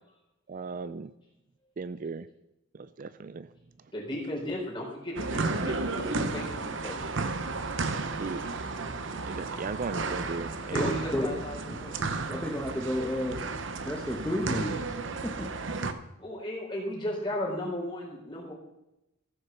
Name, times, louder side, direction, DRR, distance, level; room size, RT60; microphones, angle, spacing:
voice 1, 0.5-1.1 1.8-2.3 2.7-3.5 8.1-8.4 9.2-10.9 11.3-11.4, right 4 dB, 40° right, 13 dB, 0.4 m, -37 dB
voice 2, 3.9-7.0 8.4-8.6 10.7-12.0 16.2-18.5, left 1 dB, 25° left, -3 dB, 4.0 m, -35 dB
sound 1, 5.2-15.9, right 3 dB, 65° right, 0.9 m, -33 dB
voice 3, 10.7-11.3 12.3-13.4 13.8-14.9 15.2-15.5, left 1 dB, 5° left, -1 dB, 1.1 m, -31 dB
14.5 x 6.5 x 7.1 m, 0.90 s
head